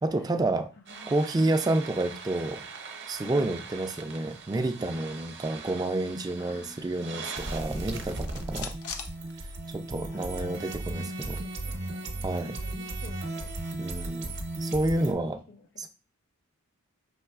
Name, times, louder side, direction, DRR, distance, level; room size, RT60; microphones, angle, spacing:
voice 1, 0.0-0.7 1.1-2.6 3.1-8.7 9.7-11.4 12.2-12.6 13.8-14.3 14.6-15.4 15.8-15.9, right 2 dB, 20° right, 8 dB, 0.3 m, -29 dB
voice 2, 0.8-1.6 3.2-3.6 4.9-5.2 6.4-7.8 9.9-10.3 10.6-13.6 14.7-15.0 15.2-15.9, left 2 dB, 50° left, 4 dB, 0.7 m, -51 dB
sound 1, 0.9-15.1, right 2 dB, 50° right, 0.7 m, -37 dB
sound 2, 7.7-10.0 10.3-10.4 10.7-12.6, left 6 dB, 85° left, 0.6 m, -44 dB
5.5 x 3.1 x 2.3 m, 0.35 s
head